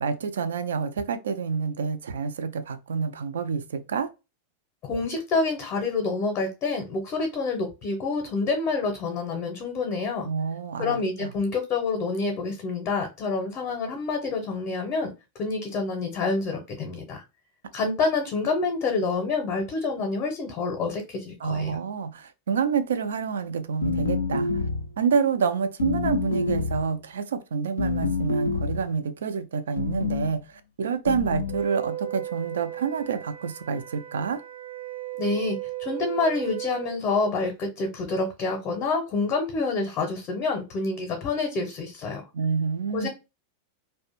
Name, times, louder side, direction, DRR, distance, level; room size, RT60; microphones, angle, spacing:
voice 1, 0.0-4.1 10.2-11.3 21.4-24.5 25.0-30.4 30.8-34.4 42.3-43.1, right 6 dB, 65° right, 0.3 m, -28 dB
voice 2, 4.8-10.3 10.8-15.1 15.4-17.2 17.7-21.8 35.2-42.2 42.9-43.1, left 3 dB, 35° left, 0.6 m, -27 dB
sound 1, 23.8-25.0 25.8-26.9 27.8-28.9 29.8-30.3 31.1-31.6, left 4 dB, 75° left, 0.4 m, -27 dB
Wind instrument woodwind instrument, 31.5-37.0, right 14 dB, 90° right, 0.9 m, -36 dB
2.4 x 2.1 x 2.8 m
figure-of-eight pair, 90°, 0 cm